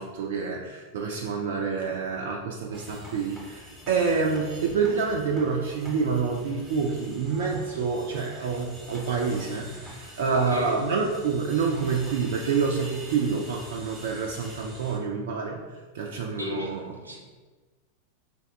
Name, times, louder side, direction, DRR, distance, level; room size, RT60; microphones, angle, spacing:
voice 1, 0.0-16.8, right 5 dB, 55° right, 0 dB, 0.4 m, -27 dB
sound 1, 2.7-15.0, equal, 10° right, 0.9 m, -45 dB
voice 2, 10.3-10.8 16.4-17.2, left 1 dB, 85° right, 0 dB, 0.7 m, -34 dB
4.0 x 2.2 x 3.6 m, 1.3 s
figure-of-eight pair, 90°, 0 cm